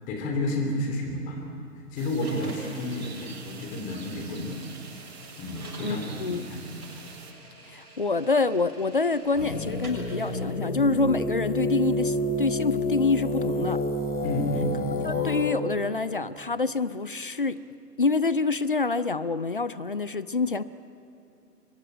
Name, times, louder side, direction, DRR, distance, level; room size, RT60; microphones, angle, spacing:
voice 1, 0.1-1.4 1.9-4.6 5.4-6.8 14.2-15.0, left 1 dB, 15° left, 3 dB, 3.0 m, -31 dB
sound 1, 2.0-7.3, right 6 dB, 40° right, 2.3 m, -47 dB
sound 2, 2.2-10.4, right 2 dB, 65° right, 7.1 m, -48 dB
voice 2, 5.8-6.5 7.7-13.8 15.0-17.6 18.0-20.6, left 3 dB, 35° left, 16 dB, 0.5 m, -26 dB
sound 3, 9.3-15.5, left 1 dB, 65° left, 3.5 m, -29 dB
23.5 x 20.5 x 8.9 m, 2.8 s
figure-of-eight pair, 135°, 48 cm